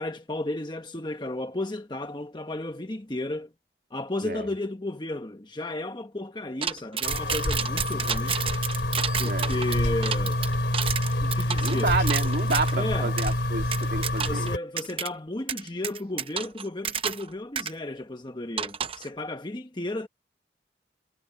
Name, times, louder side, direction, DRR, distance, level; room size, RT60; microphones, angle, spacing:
voice 1, 0.0-3.5 3.9-8.4 9.2-10.4 11.2-12.0 12.7-13.2 14.2-20.1, left 2 dB, 25° left, 1.1 m, -33 dB
sound 1, 6.6-12.7 13.2-13.3 13.7-14.5 14.8-15.1 15.5-17.3 17.5-17.7 18.6-19.1, right 7 dB, 30° right, 0.8 m, -30 dB
sound 2, 7.0-14.6, left 1 dB, 80° left, 2.9 m, -27 dB
voice 2, 11.6-14.5, right 3 dB, 55° right, 2.3 m, -30 dB
head